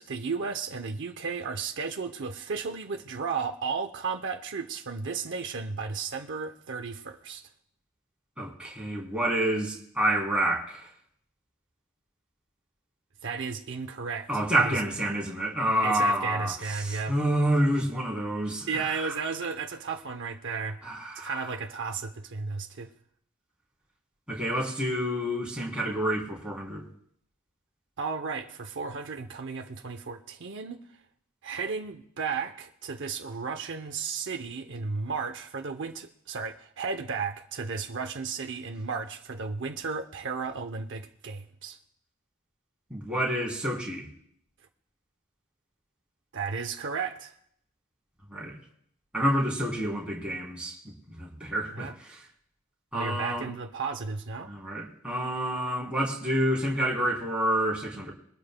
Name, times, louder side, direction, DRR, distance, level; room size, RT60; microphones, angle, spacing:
voice 1, 0.0-7.5 13.2-14.3 14.6-14.8 15.8-17.2 18.7-20.8 21.1-22.9 28.0-30.8 31.4-41.8 46.3-47.3 51.7-51.9 52.9-54.5, right 5 dB, 55° right, 5 dB, 0.7 m, -34 dB
voice 2, 8.4-10.8 14.3-16.5 16.8-19.1 20.8-21.3 24.3-26.8 42.9-44.1 48.3-48.6 49.1-51.9 52.9-53.5 54.5-58.1, right 1 dB, 5° right, -3 dB, 3.1 m, -28 dB
22.5 x 13.0 x 2.2 m, 0.70 s
head